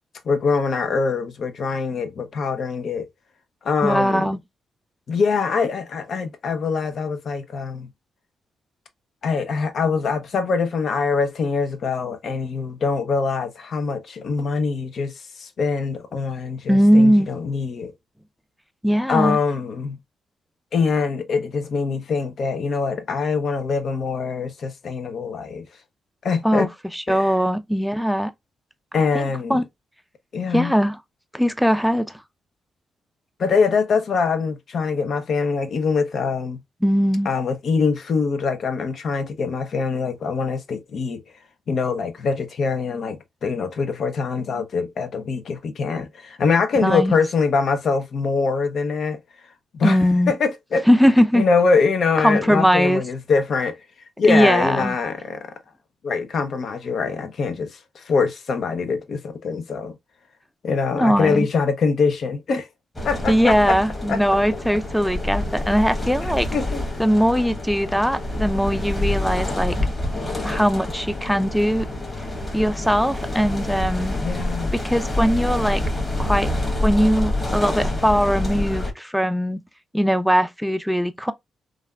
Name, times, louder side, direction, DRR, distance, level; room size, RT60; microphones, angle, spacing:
voice 1, 0.2-3.1 3.6-4.3 5.1-7.9 9.2-17.9 19.1-20.0 20.7-25.6 26.2-26.7 27.1-27.3 28.9-29.6 30.3-30.7 33.4-36.6 37.2-41.2 41.7-49.2 49.7-50.0 50.3-50.9 51.3-53.8 54.2-55.5 56.0-60.0 60.6-62.7 63.0-63.8 64.1-64.2 66.2-66.8 74.1-74.8, left 5 dB, 65° left, 0.6 m, -23 dB
voice 2, 3.8-4.4 16.7-17.3 18.8-19.4 26.4-28.3 29.1-29.2 29.5-29.7 30.5-31.0 31.3-32.1 36.8-37.3 46.8-47.2 49.8-50.3 50.9-51.5 52.2-53.0 54.3-55.0 60.9-61.5 63.3-66.5 67.0-69.7 70.4-71.9 72.5-74.2 74.7-75.8 76.2-76.5 76.8-79.6 79.9-81.3, equal, ahead, 0.4 m, -20 dB
sound 1, 62.9-78.9, left 1 dB, 20° left, 1.3 m, -27 dB
3.3 x 2.3 x 2.2 m
cardioid pair, 65°, 0 cm